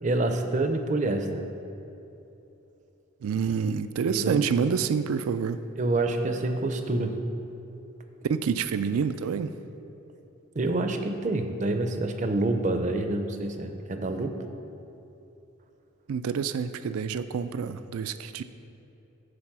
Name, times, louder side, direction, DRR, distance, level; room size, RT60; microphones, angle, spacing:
voice 1, 0.0-1.5 4.0-4.4 5.8-7.2 10.6-14.3, right 2 dB, 35° right, 6 dB, 0.5 m, -27 dB
voice 2, 3.2-5.6 8.3-9.6 16.1-18.4, right 6 dB, 90° right, 12 dB, 0.4 m, -27 dB
9.8 x 4.1 x 6.0 m, 2.9 s
head